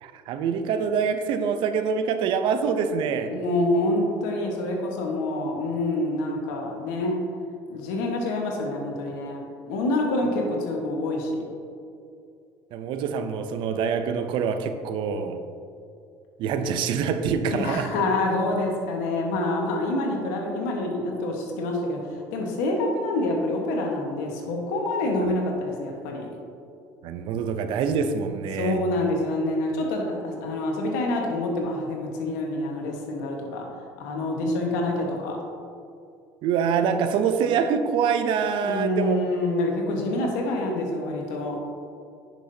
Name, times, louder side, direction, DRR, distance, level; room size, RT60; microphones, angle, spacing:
voice 1, 0.0-3.3 12.7-15.4 16.4-17.9 27.0-28.8 36.4-39.2, right 6 dB, 65° right, 8 dB, 0.6 m, -25 dB
voice 2, 3.3-7.1 7.7-11.4 17.5-26.3 28.5-33.7 34.0-35.4 38.6-41.6, left 2 dB, 85° left, 1 dB, 1.4 m, -27 dB
10.0 x 6.1 x 2.8 m, 2.5 s
supercardioid pair, 85°, 9 cm